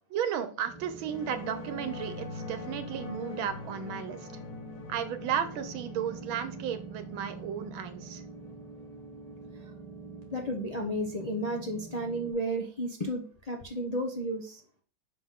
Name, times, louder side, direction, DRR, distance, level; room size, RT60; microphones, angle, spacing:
voice 1, 0.1-4.3 4.9-8.2, right 8 dB, 85° right, 10 dB, 1.7 m, -34 dB
sound 1, 0.7-12.3, right 4 dB, 60° right, 2.2 m, -45 dB
sound 2, 1.0-9.6, left 4 dB, 85° left, 1.8 m, -45 dB
voice 2, 10.3-14.6, right 1 dB, 40° left, 1 dB, 0.5 m, -33 dB
5.9 x 5.6 x 3.6 m, 0.41 s
omnidirectional pair, 2.2 m